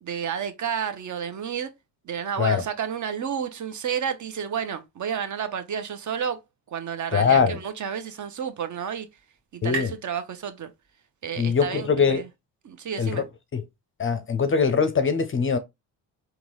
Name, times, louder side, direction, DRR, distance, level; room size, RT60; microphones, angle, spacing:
voice 1, 0.0-1.7 2.0-6.4 6.7-9.1 9.5-10.7 11.2-12.3 12.6-13.2, right 7 dB, 45° right, 0.8 m, -31 dB
voice 2, 7.1-7.6 9.6-9.9 11.4-12.2 13.0-13.2 13.5-13.6 14.0-15.6, left 6 dB, 30° left, 0.6 m, -22 dB
sound 1, 8.3-11.6, right 4 dB, 60° right, 1.8 m, -40 dB
3.8 x 2.4 x 3.1 m
hypercardioid pair, 55°, 43 cm